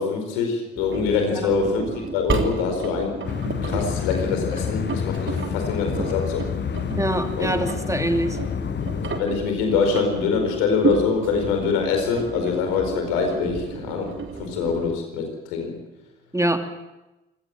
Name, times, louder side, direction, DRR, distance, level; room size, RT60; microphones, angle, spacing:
voice 1, 0.0-3.2 3.6-6.4 7.4-7.5 9.2-14.1 14.4-15.8, left 5 dB, 80° left, 4 dB, 4.8 m, -24 dB
Engine, 0.8-14.9, right 5 dB, 40° right, 3.3 m, -32 dB
sound 1, 3.2-9.2, left 8 dB, 35° left, 0.9 m, -28 dB
voice 2, 7.0-8.4 16.3-16.6, right 1 dB, 10° right, 6 dB, 2.7 m, -24 dB
25.0 x 18.0 x 7.7 m, 1.0 s
hypercardioid pair, 45°, 29 cm